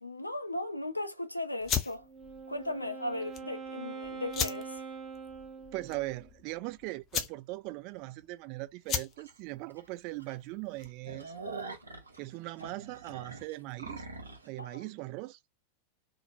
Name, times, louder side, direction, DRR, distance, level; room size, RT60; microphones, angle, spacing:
voice 1, 0.0-2.1 2.5-4.8 14.6-14.8, left 1 dB, 85° left, 0.4 m, -37 dB
sound 1, 1.6-11.1, left 7 dB, 30° left, 0.5 m, -38 dB
Wind instrument woodwind instrument, 1.9-6.3, right 5 dB, 10° right, 0.8 m, -44 dB
voice 2, 5.7-11.3 12.2-14.1 14.4-15.4, right 20 dB, 45° right, 0.4 m, -40 dB
sound 2, 9.2-9.3 9.8-9.9 10.2-10.3 10.7-14.5, right 3 dB, 80° right, 0.6 m, -44 dB
2.5 x 2.0 x 2.5 m
figure-of-eight pair, 90°, 0 cm